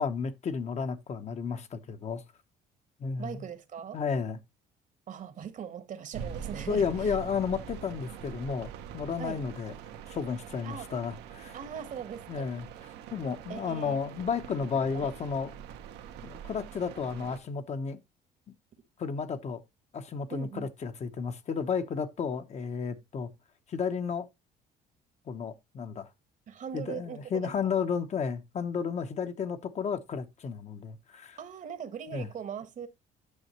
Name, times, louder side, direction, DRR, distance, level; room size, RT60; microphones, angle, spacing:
voice 1, 0.0-2.2 3.0-3.4 3.9-4.4 6.7-9.7 10.1-11.6 12.3-12.7 13.1-15.5 16.2-18.0 19.0-19.6 19.9-23.3 23.7-24.3 25.3-26.1 26.7-31.4 32.1-32.3, left 6 dB, 40° left, 0.9 m, -32 dB
voice 2, 3.2-4.0 5.1-7.2 9.2-9.4 10.6-10.9 11.5-12.5 13.5-14.0 14.9-15.1 20.3-20.7 26.5-27.7 31.4-32.9, right 8 dB, 50° right, 1.2 m, -40 dB
sound 1, 6.1-17.4, right 8 dB, 90° right, 1.2 m, -44 dB
9.7 x 6.3 x 3.0 m
cardioid pair, 110°, 17 cm